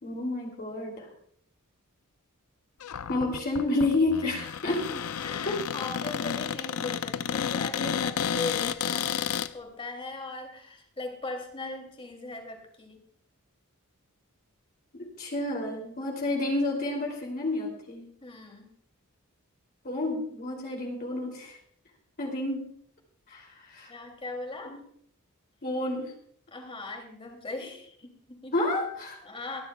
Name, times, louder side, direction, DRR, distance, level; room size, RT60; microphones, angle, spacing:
voice 1, 0.0-1.1 3.1-4.9 5.5-5.6 15.2-18.1 19.8-21.6 22.2-22.7 23.3-23.9 24.7-24.8 25.6-26.1 28.5-29.2, left 2 dB, 45° left, 0 dB, 2.8 m, -30 dB
Cupboard open or close, 2.8-9.5, left 8 dB, 75° left, 0.5 m, -31 dB
voice 2, 4.9-13.0 18.2-18.7 23.9-24.8 26.5-28.5 29.2-29.6, left 2 dB, 25° left, 3 dB, 2.7 m, -39 dB
23.5 x 11.0 x 2.3 m, 0.65 s
head